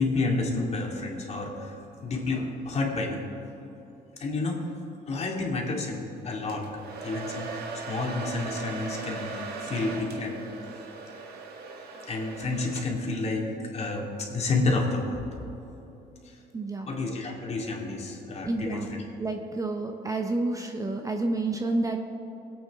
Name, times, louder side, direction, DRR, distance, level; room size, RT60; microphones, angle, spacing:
voice 1, 0.0-3.3 4.2-4.7 5.1-6.7 7.0-10.5 11.9-15.2 16.2-16.4 16.9-19.1, left 3 dB, 40° left, 0 dB, 2.4 m, -30 dB
Domestic sounds home sounds, 6.5-13.2, right 4 dB, 70° right, 1.7 m, -39 dB
voice 2, 16.5-16.9 18.4-18.9 19.2-22.0, right 2 dB, 20° right, 4 dB, 0.8 m, -29 dB
20.5 x 8.6 x 3.6 m, 3.0 s
cardioid pair, 110°, 17 cm